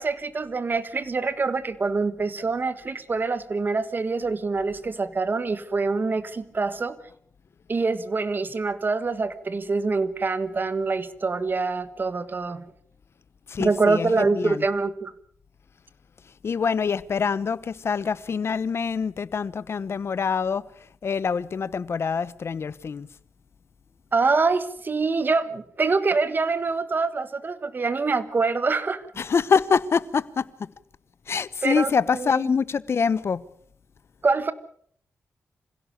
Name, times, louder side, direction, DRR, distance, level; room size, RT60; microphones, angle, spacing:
voice 1, 0.0-7.0 7.7-12.7 13.6-15.1 24.1-29.0 31.6-32.6 34.2-34.5, right 4 dB, 40° right, 1.5 m, -25 dB
voice 2, 13.5-14.6 16.4-20.6 21.0-23.1 29.2-30.7 31.3-33.4, left 6 dB, 55° left, 1.0 m, -25 dB
26.0 x 16.5 x 6.9 m
cardioid pair, 95°, 5 cm